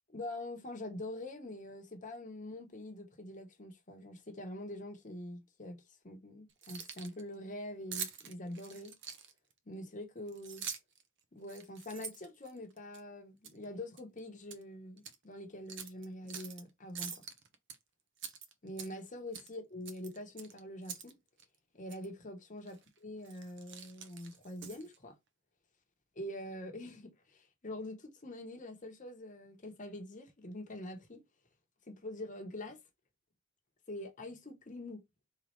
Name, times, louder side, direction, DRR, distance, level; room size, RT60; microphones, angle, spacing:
voice 1, 0.1-8.9 9.7-10.6 11.3-17.2 18.6-21.2 21.7-25.2 26.1-31.2 31.9-32.8 33.9-35.0, left 1 dB, 35° left, 1.0 m, -45 dB
Keys jangling, 6.5-7.2 7.9-9.5 10.3-11.0 11.4-13.0 13.4-13.6 14.0-14.6 15.0-15.1 15.7-16.6 16.9-17.8 18.2-19.1 19.3-19.5 19.8-21.1 21.4-21.5 21.9-22.1 22.7-22.9 23.2-25.0, right 7 dB, 50° right, 0.7 m, -45 dB
3.7 x 3.1 x 4.4 m
head